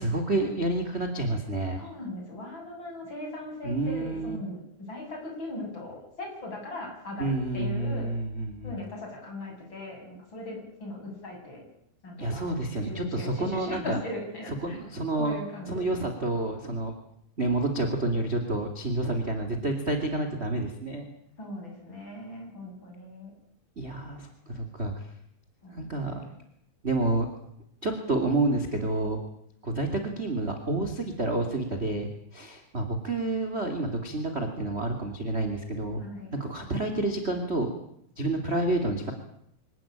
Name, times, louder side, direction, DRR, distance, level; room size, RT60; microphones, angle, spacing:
voice 1, 0.0-1.8 3.6-4.4 7.2-8.7 12.2-14.0 14.6-15.4 15.7-16.9 17.4-21.0 23.8-24.9 25.7-26.2 26.8-27.3 27.8-29.2 29.6-36.0 36.3-37.7 38.2-39.1, right 2 dB, 20° right, 5 dB, 2.0 m, -29 dB
voice 2, 1.8-4.6 4.9-8.1 8.6-11.6 12.0-12.5 12.8-14.8 15.1-15.8 21.4-23.3 25.6-26.2 36.0-36.3, left 1 dB, 25° left, 1 dB, 8.5 m, -39 dB
26.0 x 17.5 x 8.9 m, 0.72 s
omnidirectional pair, 5.3 m